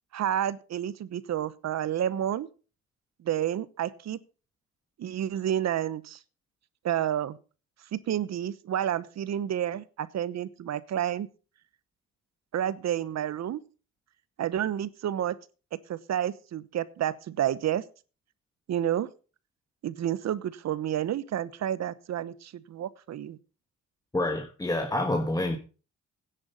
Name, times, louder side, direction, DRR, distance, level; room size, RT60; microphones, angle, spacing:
voice 1, 0.1-2.5 3.2-4.2 5.0-6.2 6.8-7.4 7.9-11.3 12.5-13.6 14.4-15.4 15.9-17.8 18.7-19.1 19.8-23.4, right 10 dB, 60° right, 1.0 m, -30 dB
voice 2, 24.1-25.6, left 1 dB, 10° left, 1.6 m, -27 dB
10.5 x 8.8 x 5.6 m
cardioid pair, 90°, 30 cm